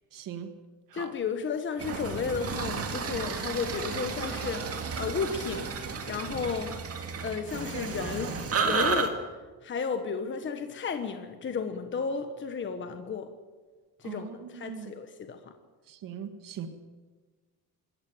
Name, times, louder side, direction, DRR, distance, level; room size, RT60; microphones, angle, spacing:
voice 1, 0.1-0.5 0.9-1.1 14.0-14.9 15.9-16.7, right 8 dB, 60° right, 7 dB, 1.9 m, -40 dB
voice 2, 0.9-4.6 5.0-6.7 7.2-8.4 8.6-9.2 9.6-13.3 14.0-15.4, left 5 dB, 30° left, 7 dB, 1.3 m, -33 dB
sound 1, 1.8-9.1, right 5 dB, 40° right, 2.1 m, -32 dB
26.0 x 14.0 x 7.9 m, 1.4 s
cardioid pair, 170°, 37 cm